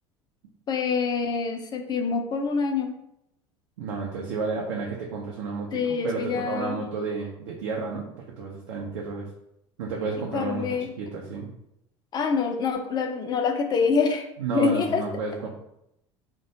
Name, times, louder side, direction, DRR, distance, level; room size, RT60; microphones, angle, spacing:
voice 1, 0.7-2.9 5.7-6.8 10.3-10.9 12.1-14.3 14.5-15.0, left 5 dB, 30° left, 5 dB, 0.4 m, -25 dB
voice 2, 3.8-8.1 8.4-9.3 9.8-10.7 11.0-11.5 14.4-15.5, right 4 dB, 65° right, -2 dB, 0.4 m, -31 dB
2.3 x 2.1 x 2.8 m, 0.79 s
figure-of-eight pair, 70°, 15 cm